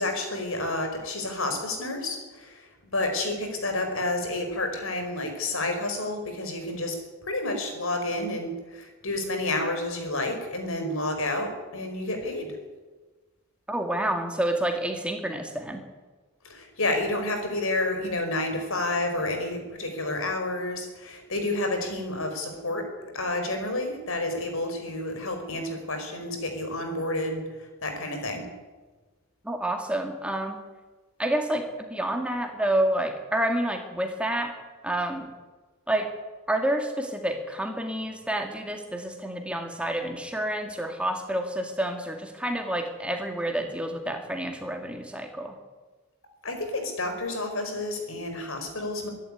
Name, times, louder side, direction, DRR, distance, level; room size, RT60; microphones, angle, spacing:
voice 1, 0.0-12.6 16.4-28.5 46.4-49.1, left 2 dB, 70° left, 5 dB, 4.9 m, -30 dB
voice 2, 13.7-15.8 29.4-30.6 31.2-34.5 34.8-35.3 35.9-36.1 36.5-45.6, right 1 dB, 5° right, 3 dB, 2.0 m, -29 dB
24.0 x 11.5 x 9.9 m, 1.3 s
head